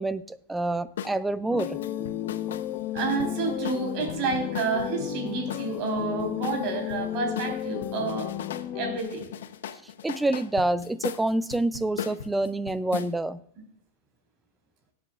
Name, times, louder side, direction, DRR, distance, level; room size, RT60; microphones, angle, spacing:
voice 1, 0.0-1.8 10.0-13.4, right 2 dB, 5° right, 16 dB, 0.4 m, -27 dB
sound 1, 1.0-1.2 1.6-4.9 5.5-7.0 7.3-8.7 9.0-13.1, left 9 dB, 90° left, 0.8 m, -38 dB
sound 2, 1.5-9.0, left 11 dB, 45° left, 1.0 m, -33 dB
voice 2, 2.9-8.3 8.7-9.3, right 4 dB, 45° right, 3 dB, 4.0 m, -30 dB
18.0 x 8.6 x 2.5 m, 0.66 s
supercardioid pair, 155°, 0 cm